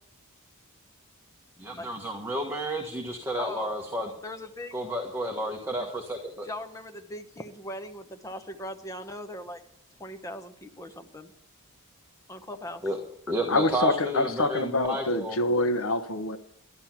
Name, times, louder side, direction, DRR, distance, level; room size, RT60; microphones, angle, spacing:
voice 1, 1.6-4.1 4.7-6.5 12.8-13.0 13.3-15.4, right 1 dB, 10° right, 1.4 m, -31 dB
voice 2, 3.4-3.7 4.2-4.7 5.8-5.9 6.4-9.6 10.0-11.3 12.3-12.8, left 1 dB, 15° left, 1.0 m, -39 dB
voice 3, 13.5-16.4, left 2 dB, 65° left, 1.0 m, -26 dB
12.0 x 11.5 x 5.9 m
head